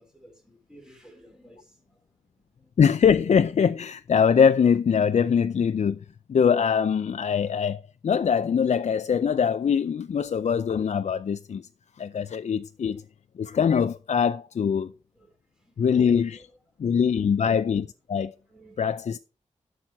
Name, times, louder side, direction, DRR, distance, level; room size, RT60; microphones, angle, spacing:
voice 1, 0.0-2.0 2.3-2.7 12.9-13.0 14.8-14.9 15.1-15.8 16.3-16.5 18.5-18.8, right 1 dB, 5° right, 4.5 m, -55 dB
voice 2, 2.8-6.0 6.3-11.7 12.0-13.0 13.4-14.9 15.8-16.5 16.8-18.3 18.8-19.2, left 7 dB, 65° left, 0.5 m, -23 dB
12.0 x 6.1 x 4.7 m
wide cardioid pair, 115°, 13 cm